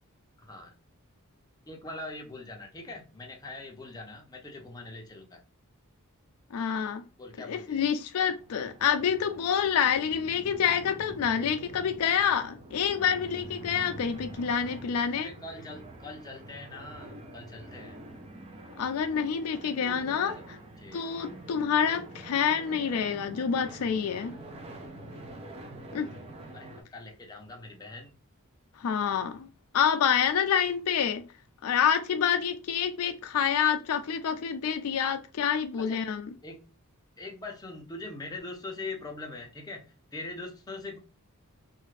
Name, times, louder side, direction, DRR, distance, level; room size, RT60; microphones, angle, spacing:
voice 1, 0.4-0.7 1.7-5.4 7.2-7.8 15.2-18.0 19.5-20.4 20.8-21.1 21.9-22.1 26.5-28.1 35.8-36.0 36.4-36.6 37.2-41.0, left 2 dB, 15° left, 0.6 m, -42 dB
voice 2, 6.5-7.0 7.4-15.3 18.8-20.3 20.9-24.3 25.9-26.1 28.8-29.5 29.7-31.2 31.6-36.4, left 7 dB, 75° left, 0.4 m, -27 dB
sound 1, 8.2-26.8, right 1 dB, 30° right, 0.5 m, -46 dB
2.7 x 2.4 x 3.2 m
head